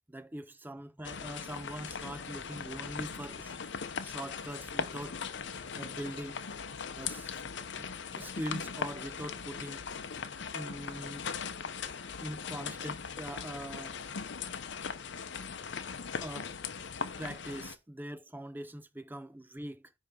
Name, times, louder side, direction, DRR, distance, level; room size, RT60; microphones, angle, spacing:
voice 1, 0.1-3.6 4.0-5.2 5.8-6.4 7.0-7.4 7.8-9.9 10.5-11.3 12.2-14.0 16.2-16.5 17.2-19.9, right 1 dB, 10° right, 0.5 m, -42 dB
sound 1, 1.0-17.8, left 6 dB, 60° left, 0.7 m, -39 dB
9.9 x 3.5 x 5.3 m
head